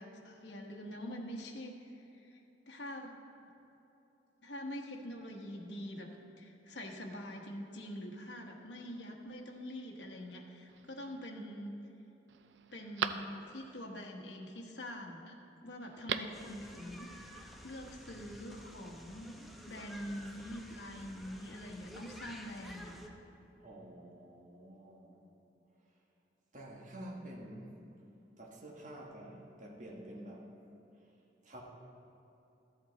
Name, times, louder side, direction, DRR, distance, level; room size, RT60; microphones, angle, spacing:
voice 1, 0.0-2.4 2.7-3.2 4.4-6.1 6.4-11.7 12.7-15.4 15.6-19.4 19.7-23.0, equal, 75° left, 0 dB, 1.1 m, -45 dB
Telephone, 10.7-11.3 11.8-11.9 12.3-13.8 15.8-16.5 16.7-16.8, right 7 dB, 85° right, 0.4 m, -40 dB
sound 1, 16.3-23.1, equal, ahead, 0.7 m, -51 dB
voice 2, 23.6-25.2 26.5-27.7 28.4-30.5 31.4-31.6, right 1 dB, 45° right, -2 dB, 1.3 m, -49 dB
13.5 x 7.8 x 4.0 m, 3.0 s
head